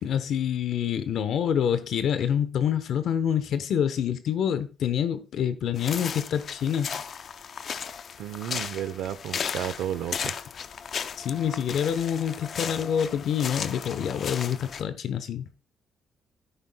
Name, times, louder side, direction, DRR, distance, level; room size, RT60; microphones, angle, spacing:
voice 1, 0.0-7.0 11.2-15.5, left 8 dB, 70° left, 0.9 m, -27 dB
sound 1, 5.8-14.8, left 7 dB, 55° left, 0.5 m, -35 dB
voice 2, 8.2-10.3, right 11 dB, 85° right, 0.7 m, -32 dB
11.5 x 9.1 x 2.2 m
cardioid pair, 90°, 0 cm